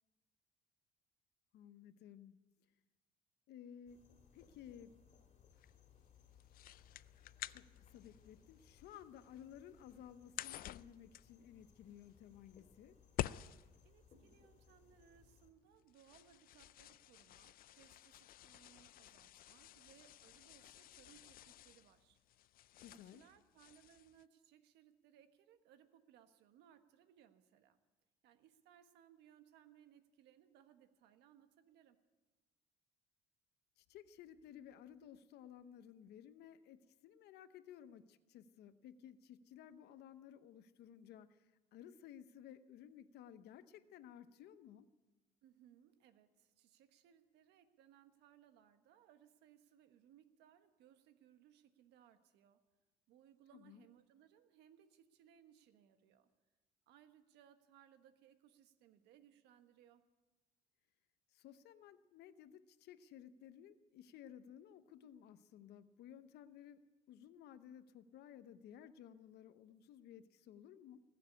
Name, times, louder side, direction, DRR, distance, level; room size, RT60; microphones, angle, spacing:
voice 1, 1.5-2.4 3.5-4.0 4.3-5.0 7.5-13.0 22.8-23.2 33.8-44.9 53.5-53.9 61.3-66.8 67.1-71.0, left 9 dB, 75° left, 12 dB, 0.8 m, -56 dB
sound 1, 3.9-15.5, left 7 dB, 40° left, 2.6 m, -67 dB
sound 2, 4.4-24.2, left 13 dB, 60° left, 0.4 m, -52 dB
voice 2, 13.8-22.2 22.8-27.8 28.2-32.0 45.4-52.6 53.1-56.3 56.9-60.0, right 10 dB, 85° right, 9 dB, 1.3 m, -66 dB
19.5 x 7.5 x 9.8 m, 1.2 s
cardioid pair, 110°, 17 cm